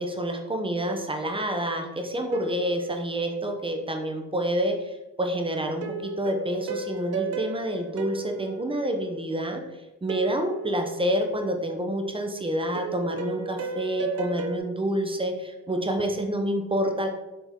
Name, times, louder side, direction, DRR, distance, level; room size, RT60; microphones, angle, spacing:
voice 1, 0.0-9.6 10.0-17.1, right 1 dB, 15° right, 4 dB, 1.0 m, -28 dB
sound 1, 2.3-3.8 5.8-9.5 10.1-11.6 12.7-14.6, right 4 dB, 55° right, 0.8 m, -36 dB
7.1 x 4.0 x 3.7 m, 1.0 s
cardioid pair, 90°, 30 cm